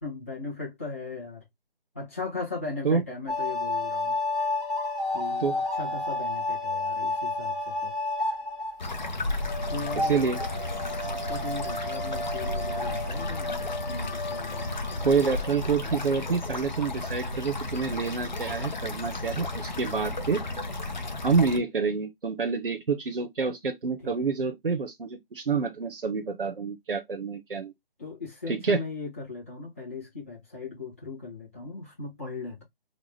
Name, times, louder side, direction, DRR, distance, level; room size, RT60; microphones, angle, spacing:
voice 1, 0.0-1.4 1.9-4.2 5.1-7.9 9.7-10.4 10.8-15.0 24.0-24.1 28.0-32.6, left 3 dB, 15° left, 1.3 m, -38 dB
sound 1, 3.3-9.1 9.4-15.4, left 2 dB, 10° right, 1.0 m, -31 dB
sound 2, 8.8-21.6, left 2 dB, 50° left, 0.8 m, -33 dB
voice 2, 15.0-20.4 21.2-27.7 28.5-28.8, right 5 dB, 70° right, 0.9 m, -27 dB
3.9 x 2.4 x 3.2 m
figure-of-eight pair, 180°, 29 cm